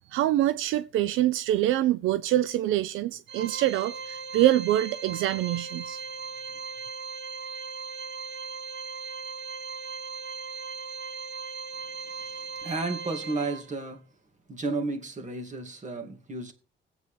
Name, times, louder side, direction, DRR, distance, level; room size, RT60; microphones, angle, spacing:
voice 1, 0.1-6.0, right 13 dB, 85° right, 0.5 m, -25 dB
Organ, 3.3-13.9, right 5 dB, 65° right, 1.3 m, -38 dB
voice 2, 12.1-14.0 14.5-16.5, right 3 dB, 40° right, 2.4 m, -33 dB
20.5 x 8.3 x 3.4 m
cardioid pair, 90°, 20 cm